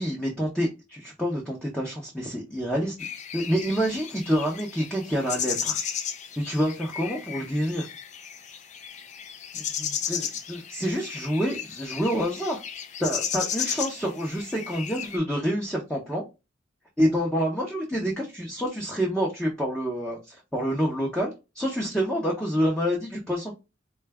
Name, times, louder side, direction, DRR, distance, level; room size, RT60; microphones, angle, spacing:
voice 1, 0.0-3.0 3.3-5.8 6.4-7.9 9.5-12.6 13.0-16.2 17.0-23.5, equal, 5° left, 0.7 m, -27 dB
sound 1, 3.0-15.2, left 8 dB, 40° left, 0.4 m, -34 dB
3.8 x 2.3 x 3.3 m
head